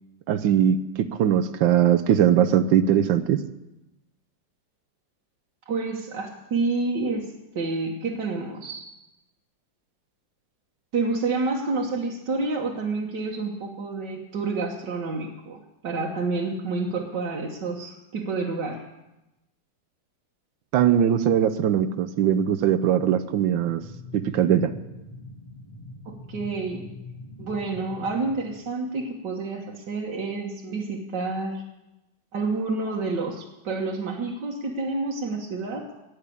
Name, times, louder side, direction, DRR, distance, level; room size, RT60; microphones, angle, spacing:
voice 1, 0.3-3.4 20.7-23.8 24.1-24.7, right 9 dB, 85° right, 11 dB, 1.5 m, -21 dB
voice 2, 5.7-8.8 10.9-18.9 26.1-26.9 27.4-31.6 32.3-36.0, right 3 dB, 70° right, -1 dB, 2.0 m, -29 dB
sound 1, 23.6-28.6, left 2 dB, 20° left, 1.7 m, -43 dB
18.0 x 6.6 x 8.5 m, 0.96 s
omnidirectional pair, 2.0 m